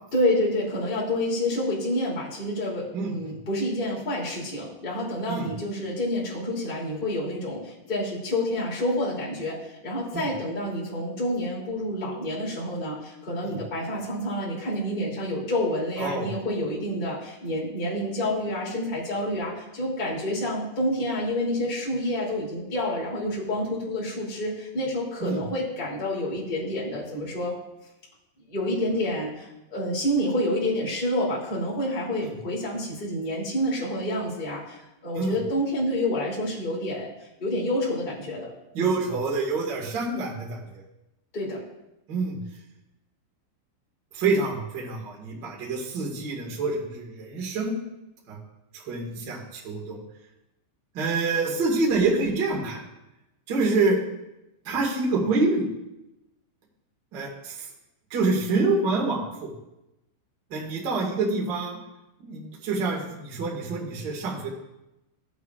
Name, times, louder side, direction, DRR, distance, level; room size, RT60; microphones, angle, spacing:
voice 1, 0.1-27.5 28.5-37.1 37.4-38.5 38.8-38.9 41.3-41.6, left 1 dB, 20° left, -5 dB, 1.7 m, -28 dB
voice 2, 2.9-3.3 5.3-5.5 10.1-10.2 13.4-13.6 16.0-16.3 25.2-25.4 32.2-32.3 35.1-35.3 38.7-40.8 42.1-42.4 44.1-47.7 48.3-48.4 48.7-50.0 50.9-52.8 53.5-54.0 54.6-55.6 57.1-57.7 58.1-59.5 60.5-61.8 62.2-64.5, right 3 dB, 90° right, -2 dB, 1.0 m, -26 dB
15.5 x 8.3 x 2.4 m, 0.92 s
omnidirectional pair, 5.5 m